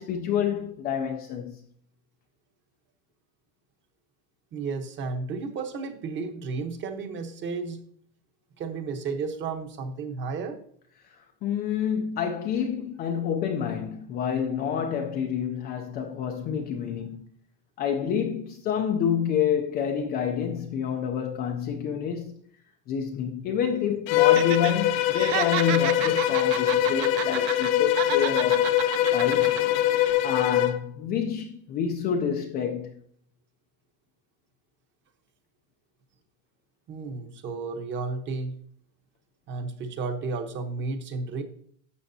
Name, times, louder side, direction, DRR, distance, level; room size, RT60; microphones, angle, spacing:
voice 1, 0.0-1.6 11.0-17.2 17.8-22.4 22.9-28.7 29.1-29.6 30.2-32.9, left 8 dB, 25° left, 0.4 m, -28 dB
voice 2, 4.5-7.8 8.6-10.6 36.9-38.5 39.5-41.4, right 4 dB, 30° right, 1.0 m, -33 dB
Bowed string instrument, 24.1-30.8, left 12 dB, 60° left, 0.7 m, -23 dB
Laughter, 24.2-24.7 25.0-27.7 28.0-29.6 30.0-30.1, right 14 dB, 50° right, 0.6 m, -31 dB
12.0 x 7.7 x 2.7 m
cardioid pair, 170°, 40 cm